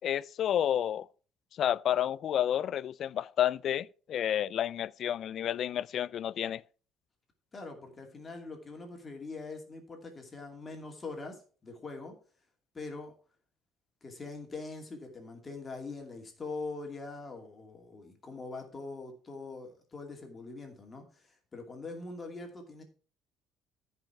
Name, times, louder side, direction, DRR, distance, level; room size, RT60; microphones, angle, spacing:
voice 1, 0.0-1.1 1.6-6.6, left 10 dB, 50° left, 0.3 m, -30 dB
voice 2, 7.5-12.1 12.7-13.1 14.0-22.8, left 3 dB, 20° left, 2.5 m, -43 dB
14.0 x 5.5 x 4.4 m
cardioid pair, 135°, 0 cm